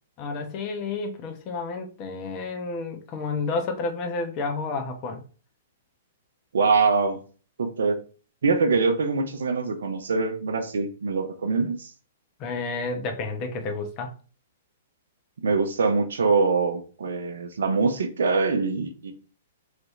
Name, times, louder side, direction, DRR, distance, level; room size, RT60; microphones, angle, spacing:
voice 1, 0.2-5.2 12.4-14.1, left 3 dB, 35° left, 0.9 m, -30 dB
voice 2, 6.5-7.2 7.6-8.0 8.4-11.9 15.4-19.1, right 4 dB, 75° right, 0.5 m, -24 dB
3.2 x 2.7 x 3.1 m
hypercardioid pair, 115°, 0 cm